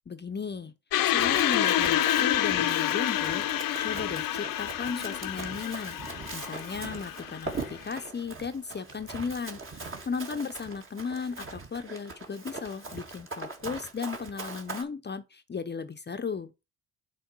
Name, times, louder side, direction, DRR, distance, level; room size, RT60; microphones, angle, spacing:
voice 1, 0.1-0.7 1.0-16.5, left 5 dB, 30° left, 0.8 m, -36 dB
sound 1, 0.9-8.0, left 12 dB, 65° left, 0.8 m, -28 dB
Run, 1.2-14.8, right 3 dB, 35° right, 1.9 m, -41 dB
6.4 x 4.3 x 6.2 m
hypercardioid pair, 50°, 38 cm